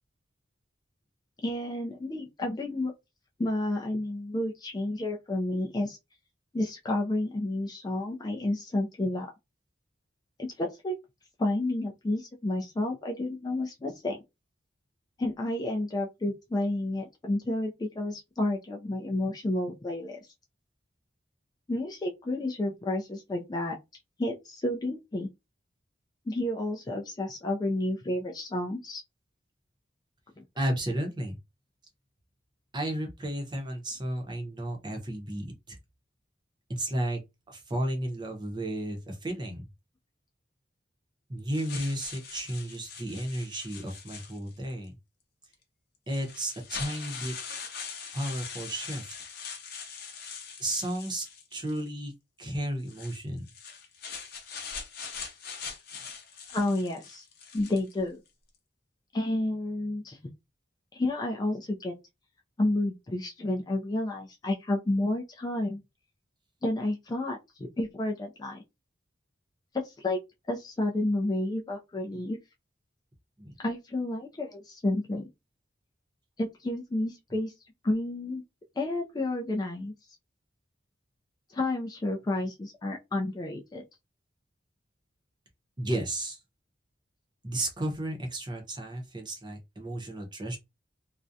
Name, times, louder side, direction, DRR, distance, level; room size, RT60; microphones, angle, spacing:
voice 1, 1.4-2.9 3.4-6.0 6.5-9.3 10.4-10.9 11.4-14.2 15.2-20.2 21.7-23.8 24.2-25.3 26.3-29.0 30.4-30.5 56.5-57.2 57.5-58.2 59.1-60.2 60.9-61.9 62.6-65.8 66.6-68.6 69.8-70.2 70.5-72.4 73.6-75.3 76.4-77.5 77.8-78.4 78.8-79.9 81.5-83.8, left 1 dB, 20° left, 0.3 m, -30 dB
voice 2, 30.6-31.4 32.7-35.8 36.7-37.2 37.5-39.6 41.3-45.0 46.1-47.3 48.1-49.1 50.6-52.1 52.4-53.4 73.4-73.5 85.8-86.4 87.4-90.6, right 1 dB, 25° right, 0.6 m, -33 dB
sound 1, 41.5-44.7 45.5-45.6 46.1-51.9 52.8-58.0, left 6 dB, 55° left, 0.6 m, -42 dB
2.4 x 2.1 x 2.6 m
head